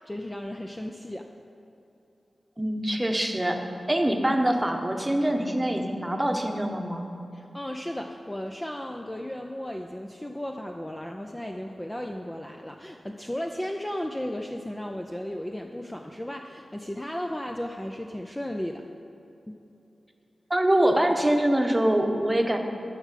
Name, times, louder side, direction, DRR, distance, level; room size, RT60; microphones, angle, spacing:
voice 1, 0.1-1.3 7.3-18.8 19.5-19.6, left 1 dB, 10° left, 3 dB, 0.5 m, -35 dB
voice 2, 2.6-3.6 3.9-7.0 20.5-22.6, right 1 dB, 10° right, 3 dB, 1.0 m, -24 dB
12.5 x 6.1 x 7.5 m, 2.9 s
wide cardioid pair, 120°, 0 cm